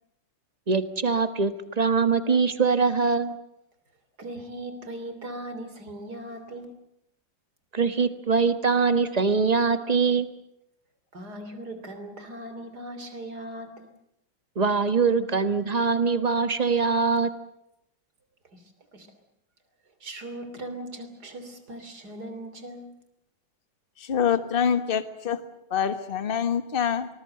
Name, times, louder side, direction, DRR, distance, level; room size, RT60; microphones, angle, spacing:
voice 1, 0.7-3.3 7.7-10.3 14.5-17.3, right 5 dB, 25° right, 10 dB, 1.2 m, -23 dB
voice 2, 4.2-6.7 11.1-13.9 18.5-18.6 18.9-19.1 20.0-23.0, right 1 dB, 55° right, 9 dB, 3.7 m, -39 dB
voice 3, 24.0-25.4 25.7-27.1, left 7 dB, 30° left, 10 dB, 1.4 m, -25 dB
26.0 x 20.5 x 7.8 m, 0.81 s
omnidirectional pair, 2.1 m